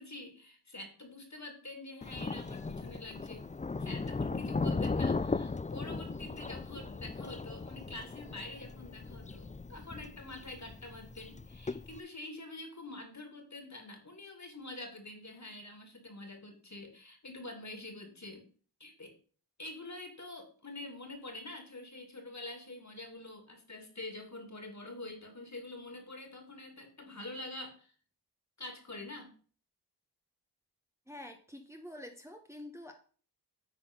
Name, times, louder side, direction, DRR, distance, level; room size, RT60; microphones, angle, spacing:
voice 1, 0.0-3.5 3.8-18.5 18.8-19.1 19.6-27.9 28.6-29.3, left 2 dB, 45° left, 4 dB, 2.6 m, -46 dB
Thunder, 2.0-12.0, left 4 dB, 20° left, 0.4 m, -37 dB
voice 2, 31.1-32.9, left 1 dB, 5° right, 3 dB, 1.3 m, -47 dB
9.6 x 4.1 x 5.4 m, 0.42 s
cardioid pair, 40°, 41 cm